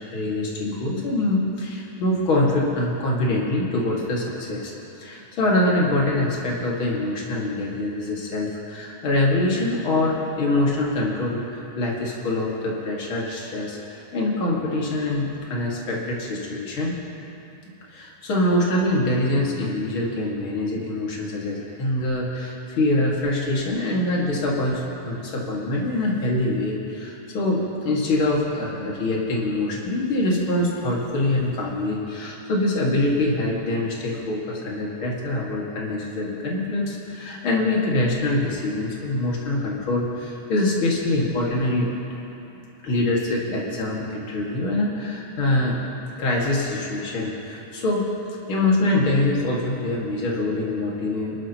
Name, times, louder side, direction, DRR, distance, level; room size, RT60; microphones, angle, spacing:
voice 1, 0.1-4.7 5.0-17.0 17.9-41.9 42.8-45.7 46.2-48.1 48.5-51.4, left 2 dB, 45° left, -4 dB, 2.7 m, -24 dB
24.5 x 13.0 x 3.0 m, 2.9 s
omnidirectional pair, 3.5 m